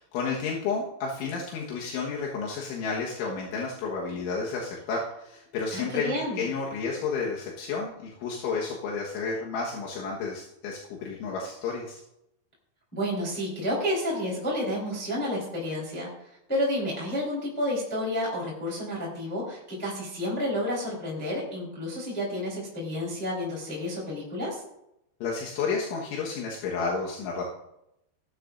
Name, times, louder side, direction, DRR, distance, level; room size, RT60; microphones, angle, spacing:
voice 1, 0.1-12.0 25.2-27.5, left 4 dB, 80° left, -3 dB, 3.9 m, -31 dB
voice 2, 5.7-6.5 12.9-16.1 16.5-24.6, left 1 dB, ahead, -5 dB, 3.5 m, -30 dB
17.5 x 12.5 x 2.6 m, 0.83 s
omnidirectional pair, 5.5 m